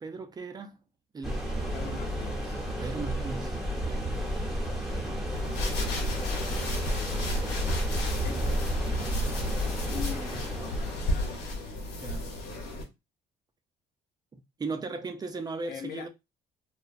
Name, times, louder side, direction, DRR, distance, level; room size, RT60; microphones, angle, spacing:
voice 1, 0.0-0.8 1.1-1.4 2.8-3.6 3.9-4.1 12.0-12.4 14.3-16.1, right 3 dB, 25° right, 0.5 m, -37 dB
sound 1, 1.2-11.7, equal, ahead, 1.0 m, -32 dB
voice 2, 1.7-2.6 5.6-6.7 7.4-7.7 8.2-9.0 9.4-11.4 15.7-16.1, left 8 dB, 65° left, 0.5 m, -44 dB
sound 2, 5.3-12.8, left 1 dB, 85° left, 1.0 m, -33 dB
2.8 x 2.2 x 2.4 m
cardioid pair, 110°, 17 cm